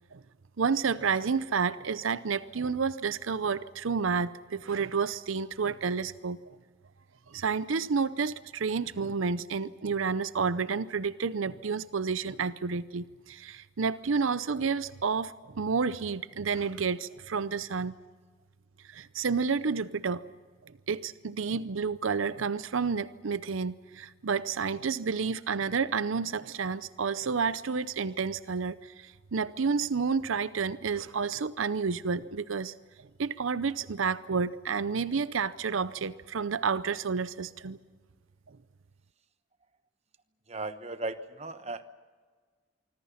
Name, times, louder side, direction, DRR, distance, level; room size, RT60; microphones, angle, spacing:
voice 1, 0.6-6.6 7.3-17.9 18.9-20.2 20.9-37.8, right 5 dB, 75° right, 15 dB, 0.6 m, -30 dB
voice 2, 40.5-41.9, right 2 dB, 30° right, 11 dB, 1.0 m, -36 dB
25.5 x 24.5 x 5.8 m, 1.5 s
head